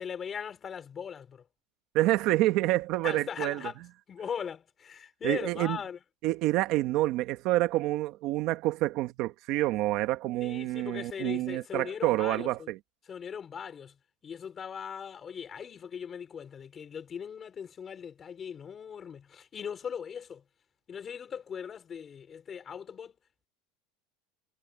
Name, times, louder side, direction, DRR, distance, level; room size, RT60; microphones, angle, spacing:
voice 1, 0.0-1.5 3.0-3.8 4.1-6.0 10.4-12.7 13.0-14.0 14.2-20.4 20.9-23.1, left 7 dB, 20° left, 4.8 m, -39 dB
voice 2, 1.9-3.6 5.2-5.8 6.2-12.8, right 16 dB, 50° right, 1.4 m, -28 dB
supercardioid pair, 160°, 0 cm